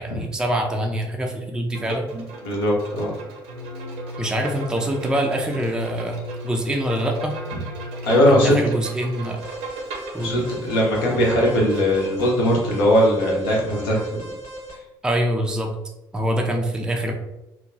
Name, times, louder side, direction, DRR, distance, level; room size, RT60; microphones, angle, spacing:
voice 1, 0.0-2.3 4.2-6.2 6.4-7.3 8.3-9.4 10.1-10.3 15.0-15.7 16.1-17.1, right 1 dB, 5° right, 3 dB, 0.4 m, -24 dB
Bowed string instrument, 1.7-12.3, right 3 dB, 60° right, 0.6 m, -38 dB
voice 2, 2.4-3.1 8.0-8.6 10.2-14.2, equal, 70° left, -3 dB, 0.7 m, -19 dB
sound 1, 3.5-8.7, left 1 dB, 90° right, 0.8 m, -36 dB
Alarm, 9.4-14.7, right 1 dB, 35° left, 1.0 m, -38 dB
2.8 x 2.1 x 2.6 m, 0.97 s
figure-of-eight pair, 50°, 12 cm